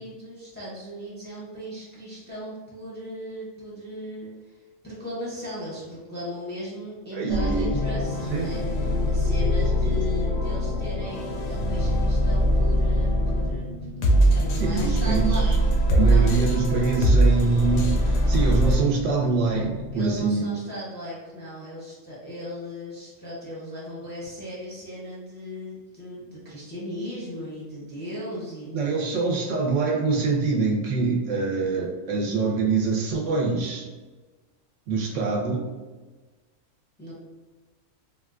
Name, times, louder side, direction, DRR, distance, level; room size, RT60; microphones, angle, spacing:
voice 1, 0.0-16.5 19.9-29.1 37.0-37.1, equal, 10° left, -7 dB, 0.5 m, -37 dB
voice 2, 7.1-7.7 8.3-8.6 9.8-9.9 14.6-15.6 15.9-20.4 28.7-33.9 34.9-35.7, right 4 dB, 75° right, -1 dB, 0.9 m, -25 dB
sound 1, 7.3-13.6 14.0-18.8, equal, 75° left, 0.9 m, -22 dB
sound 2, 7.7-20.2, left 4 dB, 30° right, 0.9 m, -36 dB
3.7 x 2.2 x 2.4 m, 1.3 s
omnidirectional pair, 1.3 m